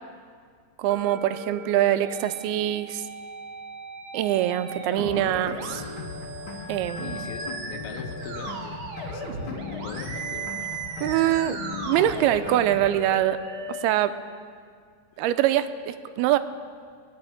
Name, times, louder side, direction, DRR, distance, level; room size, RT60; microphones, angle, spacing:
voice 1, 0.8-3.0 4.1-5.8 6.7-7.3 11.0-13.4 13.7-14.1 15.2-16.4, right 12 dB, 85° right, 11 dB, 2.5 m, -24 dB
sound 1, 0.9-13.9, right 3 dB, 45° right, 2.3 m, -37 dB
sound 2, 5.0-13.0, left 4 dB, 55° left, 1.5 m, -37 dB
voice 2, 7.0-10.8, left 7 dB, 90° left, 6 dB, 2.9 m, -42 dB
17.5 x 7.3 x 9.8 m, 2.1 s
omnidirectional pair, 4.5 m